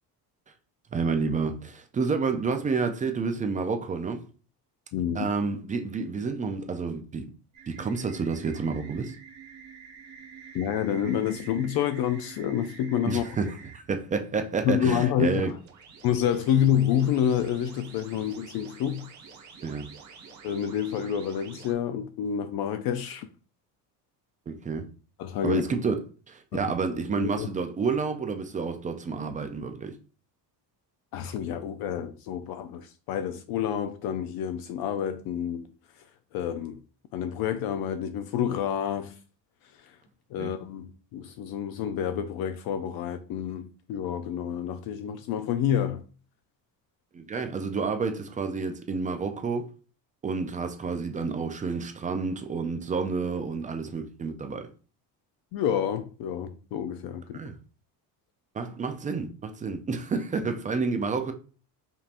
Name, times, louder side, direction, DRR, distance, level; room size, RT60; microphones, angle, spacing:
voice 1, 0.9-4.3 5.1-7.3 7.7-9.1 13.1-15.5 19.6-19.9 24.5-24.9 25.4-26.0 26.3-30.0 40.4-40.5 47.1-49.7 50.2-54.7 57.3-57.6 58.5-61.3, right 4 dB, 20° right, 0.3 m, -29 dB
voice 2, 4.9-5.3 10.5-13.3 14.6-15.5 16.0-19.1 20.4-23.3 25.2-25.6 26.5-26.6 26.9-27.5 31.1-36.0 36.3-36.8 37.1-39.2 39.7-40.0 40.3-46.0 55.5-57.4, left 9 dB, 60° left, 0.5 m, -28 dB
sound 1, 7.5-13.8 15.3-21.7, right 6 dB, 45° right, 1.3 m, -48 dB
5.2 x 2.8 x 2.5 m
cardioid pair, 145°, 41 cm